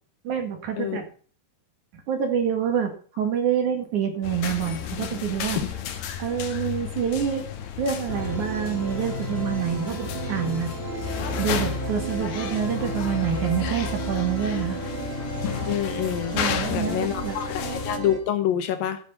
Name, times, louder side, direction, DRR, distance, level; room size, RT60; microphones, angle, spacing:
voice 1, 0.2-1.1 2.1-2.9 3.2-5.6 6.2-7.4 7.8-10.7 11.4-14.8 16.3-17.4, right 8 dB, 55° right, 5 dB, 2.9 m, -27 dB
sound 1, 4.2-18.0, left 9 dB, 90° left, 3.3 m, -33 dB
sound 2, 8.1-18.2, right 1 dB, 20° right, 1.7 m, -32 dB
voice 2, 15.7-16.4 16.7-19.0, left 10 dB, 75° left, 10 dB, 2.5 m, -27 dB
14.5 x 7.4 x 5.5 m, 0.43 s
omnidirectional pair, 4.4 m